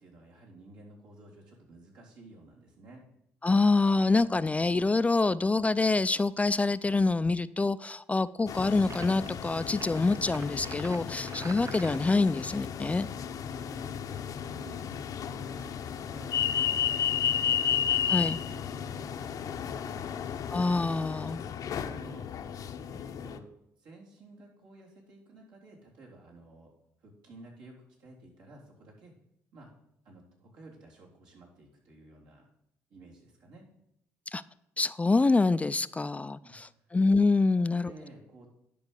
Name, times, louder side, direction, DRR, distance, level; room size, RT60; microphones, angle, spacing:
voice 1, 0.0-3.0 13.3-17.6 18.1-20.1 21.2-22.3 22.9-23.5 23.8-26.7 27.0-29.1 29.5-29.7 30.0-32.4 32.9-33.7 36.4-36.9 37.5-38.5, right 2 dB, 80° right, -3 dB, 3.6 m, -52 dB
voice 2, 3.4-13.1 18.1-18.4 20.5-21.4 34.3-34.4 34.8-37.9, left 3 dB, 20° left, 15 dB, 0.4 m, -26 dB
sound 1, 8.5-23.4, left 9 dB, 60° left, 0.7 m, -33 dB
sound 2, 8.9-9.3 9.7-12.2, right 6 dB, 45° right, 0.6 m, -46 dB
10.5 x 4.7 x 6.9 m, 0.79 s
supercardioid pair, 60°, 7 cm